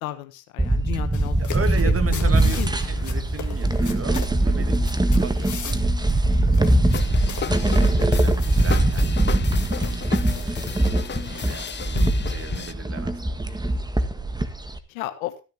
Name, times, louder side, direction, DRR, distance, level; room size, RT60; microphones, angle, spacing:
voice 1, 0.0-1.5 1.8-2.7 2.9-3.3 11.9-12.5 14.9-15.3, left 15 dB, 90° left, 10 dB, 1.2 m, -34 dB
sound 1, 0.6-14.8, right 2 dB, 10° right, 1.5 m, -22 dB
sound 2, 1.1-11.7, left 8 dB, 45° left, 1.9 m, -41 dB
voice 2, 1.4-4.8 5.1-13.5, right 5 dB, 35° right, 8 dB, 2.3 m, -37 dB
sound 3, 6.9-12.7, left 7 dB, 25° left, 0.7 m, -32 dB
15.0 x 10.5 x 2.8 m, 0.31 s
hypercardioid pair, 55°, 40 cm